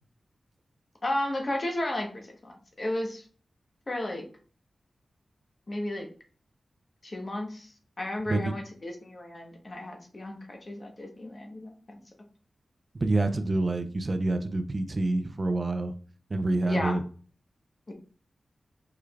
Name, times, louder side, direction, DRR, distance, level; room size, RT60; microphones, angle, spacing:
voice 1, 1.0-3.2 3.9-4.2 5.7-6.1 7.0-7.7 8.0-11.7 16.7-17.0 17.9-18.0, left 1 dB, 40° left, 3 dB, 1.1 m, -33 dB
voice 2, 12.9-15.9 16.3-17.0, right 2 dB, 40° right, 8 dB, 0.5 m, -27 dB
4.8 x 4.6 x 2.4 m, 0.41 s
wide cardioid pair, 80°, 0 cm